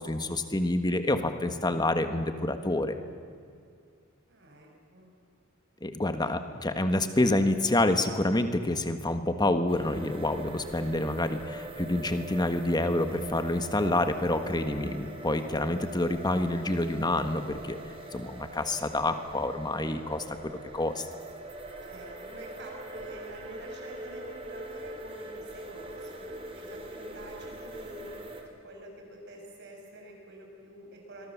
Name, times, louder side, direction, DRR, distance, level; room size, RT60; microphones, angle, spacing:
voice 1, 0.0-3.0 5.8-17.8 18.1-21.1, left 1 dB, 20° left, 8 dB, 1.5 m, -28 dB
voice 2, 4.3-5.1 6.2-6.3 21.9-26.2 26.5-28.1 28.6-31.3, equal, 55° right, 1 dB, 6.5 m, -47 dB
sound 1, 9.7-28.4, right 1 dB, 25° right, 3.4 m, -43 dB
26.5 x 22.5 x 7.4 m, 2.3 s
head